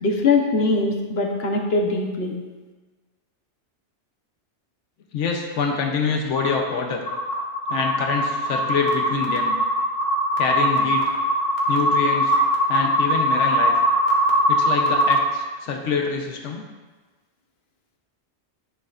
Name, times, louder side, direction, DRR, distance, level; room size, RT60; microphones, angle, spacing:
voice 1, 0.0-2.3, left 3 dB, 60° left, 2 dB, 1.2 m, -21 dB
voice 2, 5.1-7.0 7.7-9.5 10.4-11.0 11.7-12.3 12.7-13.7 14.5-16.6, left 5 dB, 90° left, 2 dB, 1.1 m, -25 dB
sound 1, 6.4-6.5 7.1-15.2, equal, 40° left, 1.3 m, -21 dB
10.5 x 6.6 x 2.5 m, 1.3 s
omnidirectional pair, 1.2 m